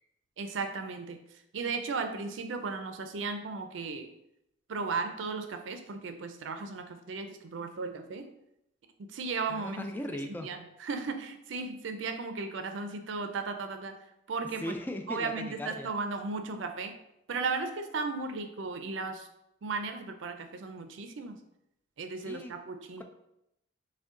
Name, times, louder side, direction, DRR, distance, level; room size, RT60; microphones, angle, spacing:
voice 1, 0.4-1.2 1.5-4.1 4.7-8.3 9.0-9.8 10.4-14.0 14.3-14.8 15.1-17.0 17.3-19.3 19.6-21.4 22.0-23.0, right 4 dB, 80° right, 7 dB, 0.4 m, -35 dB
voice 2, 9.5-10.5 14.6-15.9 22.2-22.5 23.0-23.1, left 1 dB, 10° left, 5 dB, 0.3 m, -38 dB
6.1 x 2.2 x 3.6 m, 0.83 s
head